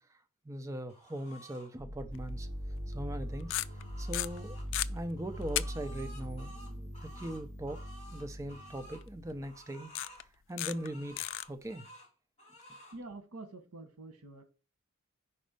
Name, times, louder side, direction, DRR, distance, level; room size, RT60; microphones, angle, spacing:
voice 1, 0.4-2.5 2.9-3.6 4.0-4.6 4.9-7.8 8.1-9.9 10.2-11.9, right 1 dB, 15° right, 0.4 m, -40 dB
sound 1, 0.9-1.7 3.1-4.7 5.2-9.0 9.4-10.3 10.6-12.1 12.4-13.0, equal, 30° left, 2.9 m, -54 dB
sound 2, 1.8-9.5, equal, 55° right, 1.0 m, -41 dB
sound 3, 2.2-2.3 3.4-3.8 4.1-4.9 5.6-5.7 6.0-6.1 9.0-9.1 10.0-10.2 10.6-10.9 11.2-11.4, left 15 dB, 60° left, 0.3 m, -33 dB
voice 2, 12.9-14.4, right 2 dB, 80° right, 1.1 m, -47 dB
5.2 x 4.2 x 5.1 m
head